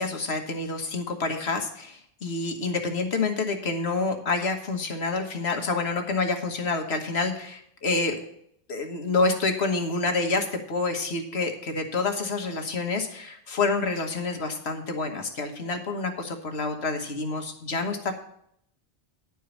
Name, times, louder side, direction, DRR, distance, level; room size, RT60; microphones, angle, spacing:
voice 1, 0.0-8.2 8.7-18.1, left 3 dB, 85° left, 4 dB, 1.6 m, -28 dB
11.0 x 4.7 x 8.2 m, 0.69 s
omnidirectional pair, 1.1 m